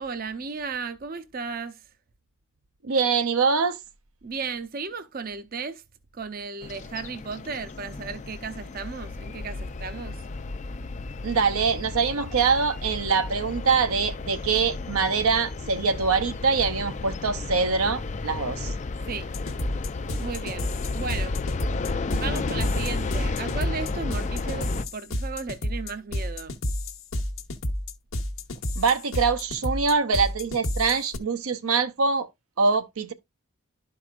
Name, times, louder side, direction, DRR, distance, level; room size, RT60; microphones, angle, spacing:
voice 1, 0.0-1.8 4.2-5.8 6.1-10.2 19.1-19.3 20.2-21.4 22.2-26.6, right 5 dB, 45° right, 0.6 m, -35 dB
voice 2, 2.8-3.8 11.2-18.7 28.8-32.3 32.6-33.1, right 5 dB, 80° right, 0.7 m, -24 dB
sound 1, 6.6-24.8, left 3 dB, 35° left, 0.4 m, -33 dB
sound 2, 19.3-31.2, left 1 dB, 65° left, 1.0 m, -30 dB
12.0 x 4.8 x 2.4 m
head